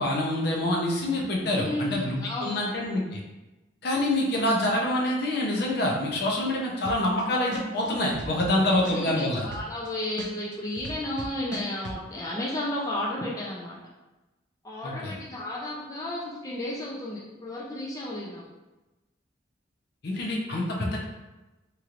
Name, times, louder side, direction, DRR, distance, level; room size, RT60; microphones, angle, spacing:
voice 1, 0.0-3.2 3.8-9.5 14.8-15.1 20.0-21.0, left 1 dB, 60° left, -2 dB, 0.6 m, -26 dB
voice 2, 1.5-2.6 8.9-13.8 14.6-18.4, left 1 dB, 20° left, -5 dB, 0.4 m, -33 dB
sound 1, 6.8-7.2 7.5-9.9 10.2-12.0, right 2 dB, 70° right, 0.4 m, -37 dB
3.0 x 3.0 x 2.5 m, 1.1 s
head